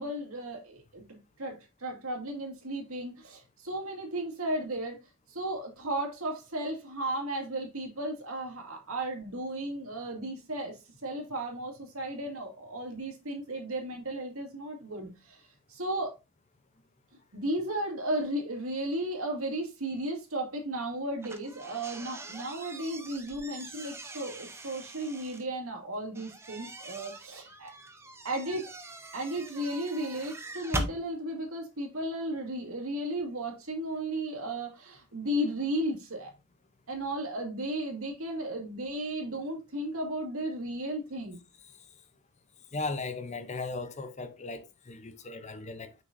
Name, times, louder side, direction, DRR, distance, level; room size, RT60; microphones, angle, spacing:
voice 1, 0.0-5.0 5.3-15.4 15.7-16.2 17.3-27.7 28.2-28.7 29.1-36.3 36.9-41.4, right 1 dB, 75° right, 2.2 m, -34 dB
sound 1, 21.2-25.4 26.2-31.0, right 2 dB, 10° right, 0.6 m, -41 dB
voice 2, 42.7-45.9, left 3 dB, 30° left, 0.6 m, -37 dB
6.2 x 6.2 x 2.6 m
head